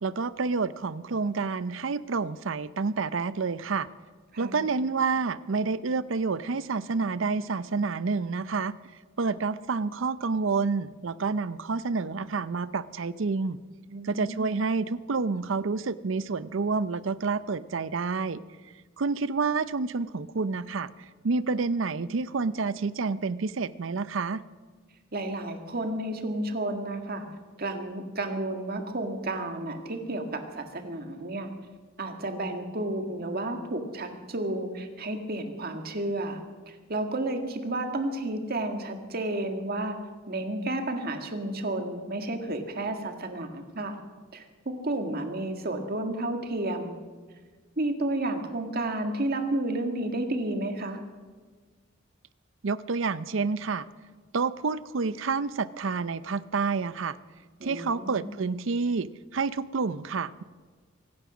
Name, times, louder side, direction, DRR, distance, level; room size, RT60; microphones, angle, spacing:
voice 1, 0.0-3.9 4.4-8.7 9.2-13.6 14.0-18.4 19.0-20.9 21.2-24.4 52.6-53.9 54.3-57.2 57.6-60.4, right 4 dB, 65° right, 16 dB, 0.6 m, -29 dB
voice 2, 13.9-14.6 25.1-27.3 27.6-31.5 32.0-36.4 36.7-40.0 40.3-44.0 44.3-47.0 47.8-51.0 57.6-58.3, right 1 dB, 50° right, 5 dB, 1.8 m, -31 dB
24.0 x 9.6 x 6.2 m, 1.5 s
head